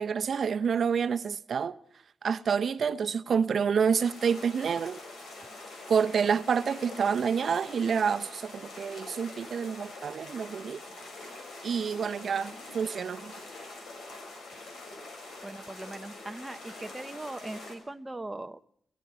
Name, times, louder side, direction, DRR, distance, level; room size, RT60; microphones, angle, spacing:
voice 1, 0.0-1.8 2.2-5.0 5.9-10.8 11.6-13.3, right 6 dB, 60° right, 0.7 m, -28 dB
sound 1, 4.0-17.7, left 2 dB, 80° left, 6.7 m, -45 dB
voice 2, 15.4-18.6, right 2 dB, 15° right, 0.8 m, -40 dB
18.0 x 15.5 x 9.3 m
wide cardioid pair, 115°, 0 cm